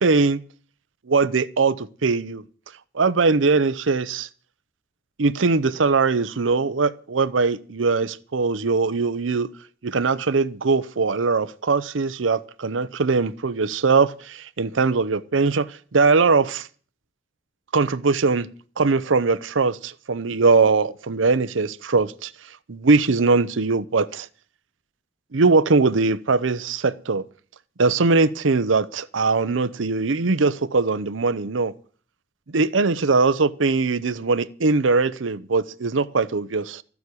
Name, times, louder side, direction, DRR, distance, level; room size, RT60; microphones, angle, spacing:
voice 1, 0.0-0.4 1.1-2.4 2.9-4.3 5.2-9.5 9.8-15.7 15.9-16.7 17.7-18.5 18.8-22.3 22.7-24.3 25.3-27.2 27.8-31.7 32.5-36.8, right 4 dB, 80° right, 0.7 m, -21 dB
14.0 x 7.1 x 9.7 m
head